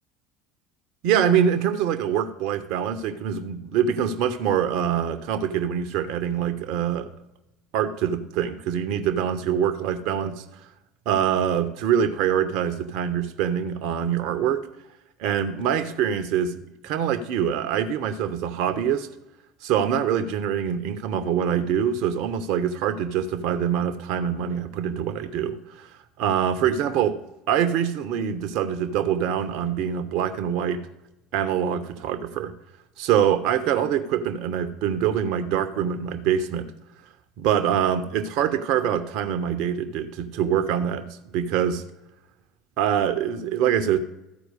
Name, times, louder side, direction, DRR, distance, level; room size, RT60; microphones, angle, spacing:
voice 1, 1.0-7.1 7.7-10.4 11.1-14.6 15.2-19.1 19.6-25.9 26.2-27.2 27.5-30.8 31.3-32.5 33.0-36.7 37.4-41.8 42.8-44.0, right 9 dB, 60° right, 8 dB, 0.7 m, -24 dB
13.5 x 4.5 x 6.6 m, 0.93 s
hypercardioid pair, 70°, 0 cm